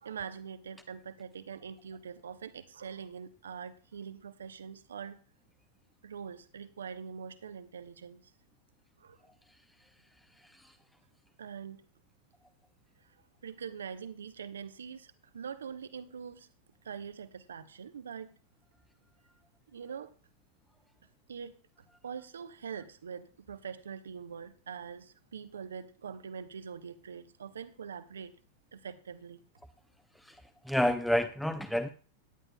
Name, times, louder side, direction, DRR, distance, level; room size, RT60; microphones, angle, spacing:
voice 1, 0.0-5.2 6.0-8.3 9.0-9.2 11.4-11.8 13.0-16.5 16.8-18.3 19.7-20.1 21.3-21.6 22.0-28.4 28.7-29.5, right 7 dB, 70° right, 13 dB, 0.8 m, -43 dB
voice 2, 10.4-10.7 30.2-31.9, left 1 dB, 5° left, 10 dB, 0.6 m, -30 dB
17.5 x 10.0 x 2.3 m, 0.38 s
figure-of-eight pair, 90°, 0 cm